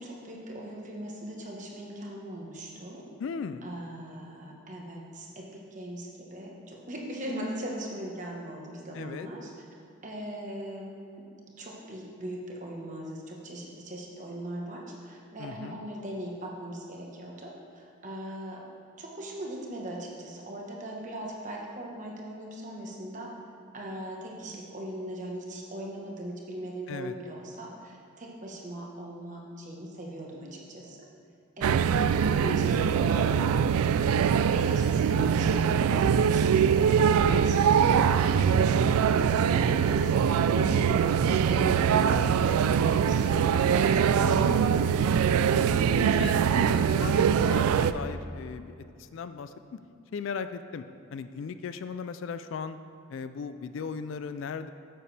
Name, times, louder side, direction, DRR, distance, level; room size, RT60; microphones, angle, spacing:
voice 1, 0.0-3.0 3.6-9.5 10.0-11.2 11.6-18.6 19.0-23.3 23.7-31.0 31.6-38.6 39.0-45.1, right 1 dB, 35° right, -2 dB, 1.2 m, -39 dB
voice 2, 3.2-3.7 8.9-9.3 15.4-15.8 26.9-27.1 35.0-35.4 44.2-44.8 46.2-49.5 50.1-50.8 51.1-52.8 53.1-54.7, left 5 dB, 60° left, 11 dB, 0.3 m, -37 dB
sound 1, 31.6-47.9, right 7 dB, 85° right, 0.3 m, -23 dB
9.3 x 7.7 x 3.3 m, 2.5 s
head